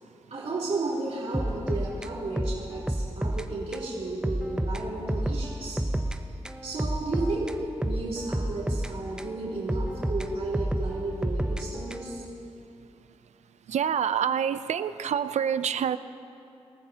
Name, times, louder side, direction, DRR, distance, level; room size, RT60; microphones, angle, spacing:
voice 1, 0.3-5.8 6.6-7.5 7.8-12.2, right 2 dB, 70° right, -7 dB, 3.7 m, -33 dB
sound 1, 1.3-3.5 3.7-3.9 4.2-6.2 6.4-9.3 9.7-12.2, right 1 dB, 5° right, 0.7 m, -30 dB
voice 2, 13.7-16.0, right 8 dB, 85° right, 13 dB, 0.4 m, -27 dB
27.0 x 14.5 x 2.9 m, 2.7 s
cardioid pair, 80°, 11 cm